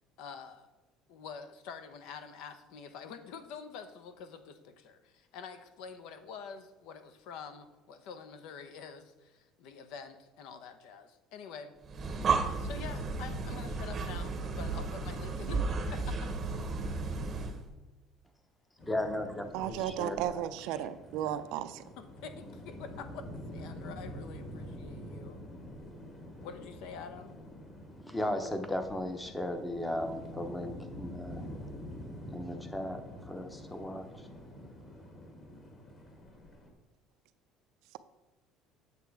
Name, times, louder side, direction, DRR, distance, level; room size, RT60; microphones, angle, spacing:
voice 1, 0.2-0.7 1.1-11.7 12.6-16.2 22.0-23.3 23.5-25.4 26.4-27.4, left 6 dB, 65° left, 10 dB, 0.8 m, -46 dB
Breathing, 11.8-17.6, right 4 dB, 25° right, 0.8 m, -33 dB
sound 1, 18.8-36.7, equal, 25° left, 1.5 m, -46 dB
voice 2, 18.9-20.5 20.8-20.9 28.0-31.5 32.3-34.3, left 1 dB, 5° left, 7 dB, 0.8 m, -36 dB
voice 3, 19.5-21.8, right 11 dB, 70° right, 11 dB, 0.5 m, -34 dB
8.4 x 6.8 x 4.7 m, 1.1 s
cardioid pair, 165°, 0 cm